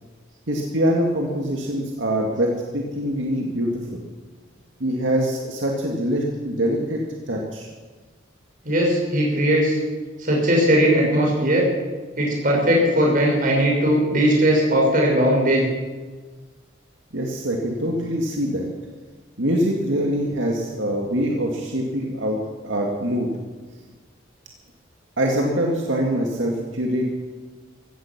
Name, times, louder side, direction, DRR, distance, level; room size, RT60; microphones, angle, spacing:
voice 1, 0.5-4.0 4.8-7.0 7.3-7.7 17.1-18.7 19.4-23.3 25.2-27.1, equal, 80° right, 0 dB, 2.1 m, -24 dB
voice 2, 8.6-9.8 10.2-11.7 12.2-15.7, equal, 45° right, -1 dB, 5.8 m, -19 dB
15.5 x 15.5 x 6.0 m, 1.4 s
head